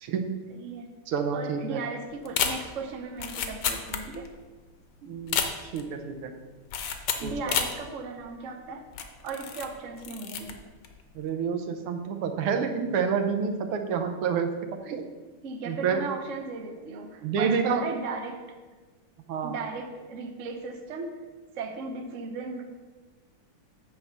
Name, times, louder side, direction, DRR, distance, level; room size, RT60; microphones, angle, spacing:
voice 1, 0.5-0.9 1.3-4.3 7.2-8.8 9.2-10.6 15.4-18.4 19.4-21.2 21.6-22.6, right 4 dB, 60° right, 4 dB, 0.8 m, -36 dB
voice 2, 1.1-1.8 5.0-6.3 7.2-7.5 11.2-14.5 14.9-15.0 15.7-16.0 17.2-17.8 19.3-19.5, right 6 dB, 80° right, 5 dB, 1.7 m, -28 dB
sound 1, 2.2-4.4 4.7-4.8 5.2-5.9 6.7-7.8 8.3-8.4 8.9-9.7 10.0-10.5 10.8-11.1, left 7 dB, 65° left, 1.2 m, -30 dB
9.6 x 3.5 x 6.8 m, 1.3 s
omnidirectional pair, 2.4 m